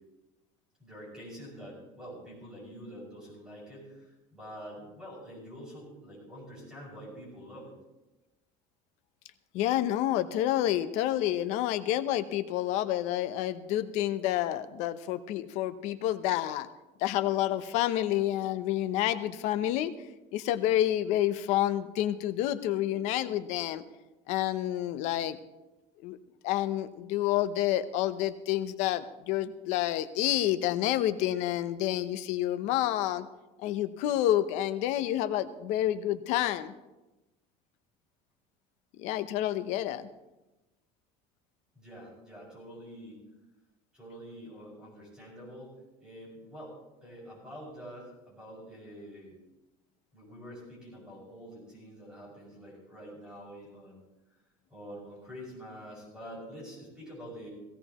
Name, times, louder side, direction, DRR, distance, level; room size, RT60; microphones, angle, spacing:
voice 1, 0.8-7.8 41.7-43.3 43.9-45.7 46.0-49.4 50.1-54.0 54.7-57.5, equal, 5° right, -5 dB, 6.0 m, -46 dB
voice 2, 9.5-16.7 17.0-19.9 20.3-23.8 24.3-25.4 26.0-26.2 26.4-33.3 33.6-36.7 39.0-40.1, left 13 dB, 55° left, 12 dB, 0.7 m, -29 dB
17.0 x 16.5 x 3.0 m, 1.0 s
cardioid pair, 175°, 14 cm